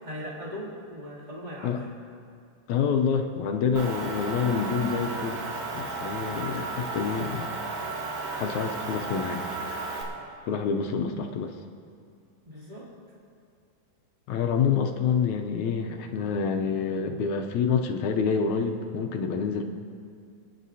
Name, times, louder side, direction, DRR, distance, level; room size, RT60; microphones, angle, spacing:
voice 1, 0.0-1.7 12.4-12.8, equal, 15° right, -6 dB, 2.4 m, -39 dB
voice 2, 2.7-5.4 5.7-7.5 8.3-9.4 10.5-11.6 14.3-19.6, left 6 dB, 75° left, 4 dB, 1.8 m, -27 dB
Motor vehicle (road) / Engine, 3.8-10.0, right 3 dB, 70° right, 3.3 m, -34 dB
29.5 x 10.0 x 2.7 m, 2.3 s
omnidirectional pair, 4.0 m